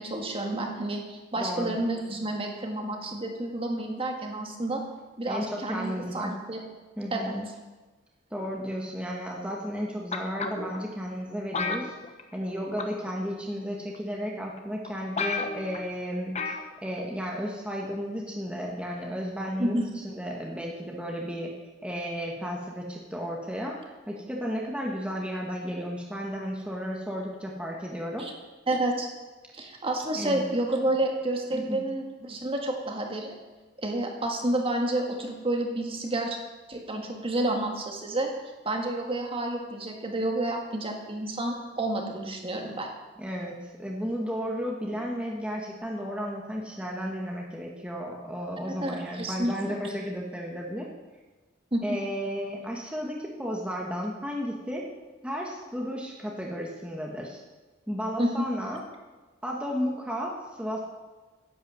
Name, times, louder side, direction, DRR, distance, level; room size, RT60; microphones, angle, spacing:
voice 1, 0.0-4.8 5.2-6.6 7.1-7.3 19.6-19.9 28.2-28.3 28.7-29.1 29.5-33.4 33.8-36.4 36.7-38.3 38.6-42.9 48.7-49.8 51.7-52.0 58.2-58.4, right 1 dB, 30° right, 2 dB, 1.8 m, -30 dB
voice 2, 1.4-1.8 5.3-6.3 7.0-7.5 8.3-11.9 12.3-21.5 21.8-23.8 24.1-28.3 30.1-30.4 31.5-31.8 43.2-50.9 51.8-54.8 55.2-57.4 57.9-58.8 59.4-60.8, equal, 5° right, -2 dB, 1.5 m, -33 dB
sound 1, 10.1-10.8 11.5-12.5 12.8-13.1 13.9-14.0 14.6-14.7 14.8-14.9 15.2-15.8 16.3-16.7 17.0-17.1, left 4 dB, 35° left, 1.1 m, -32 dB
11.0 x 8.8 x 7.6 m, 1.2 s
head